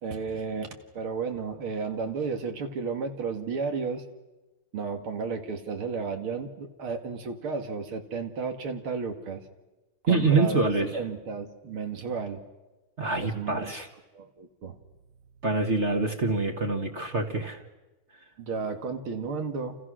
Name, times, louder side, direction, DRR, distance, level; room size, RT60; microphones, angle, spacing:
voice 1, 0.0-4.0 4.7-9.4 10.0-12.4 13.2-13.8 14.1-14.8 18.4-19.8, right 5 dB, 90° right, 6 dB, 2.9 m, -33 dB
voice 2, 10.1-10.9 13.0-13.9 15.4-17.6, right 3 dB, 35° right, 3 dB, 1.7 m, -25 dB
28.5 x 28.5 x 6.3 m, 1.1 s
omnidirectional pair, 2.3 m